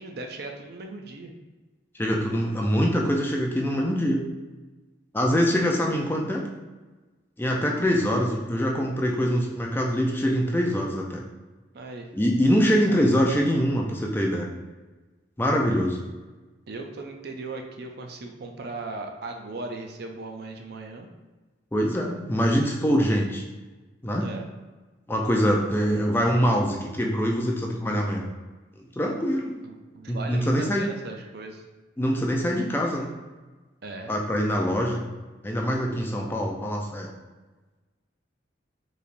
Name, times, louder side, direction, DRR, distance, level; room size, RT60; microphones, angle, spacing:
voice 1, 0.0-1.3 11.7-12.1 12.8-13.4 16.7-21.1 24.2-24.5 29.6-31.6 33.8-34.1, right 3 dB, 55° right, 3 dB, 0.5 m, -38 dB
voice 2, 1.9-4.2 5.1-6.4 7.4-11.2 12.1-14.5 15.4-16.0 21.7-23.4 24.0-24.3 25.1-28.3 29.0-29.5 30.1-30.8 32.0-33.1 34.1-35.0 35.4-37.1, equal, 10° left, 0 dB, 0.4 m, -24 dB
4.8 x 3.3 x 2.6 m, 1.2 s
head